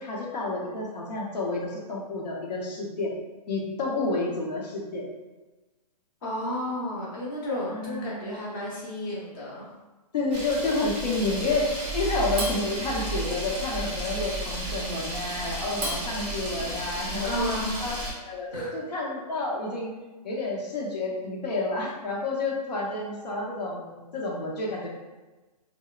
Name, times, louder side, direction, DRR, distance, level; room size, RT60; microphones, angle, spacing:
voice 1, 0.0-3.1 3.5-5.0 7.7-8.4 10.1-17.5 17.8-19.9 20.2-24.9, left 2 dB, 85° left, -3 dB, 0.8 m, -30 dB
voice 2, 6.2-9.7 17.2-18.1 18.5-18.7, left 1 dB, 35° left, -5 dB, 0.7 m, -32 dB
Camera, 10.3-18.1, right 2 dB, 15° right, 0.7 m, -33 dB
2.9 x 2.0 x 2.3 m, 1.2 s
hypercardioid pair, 165°, 21 cm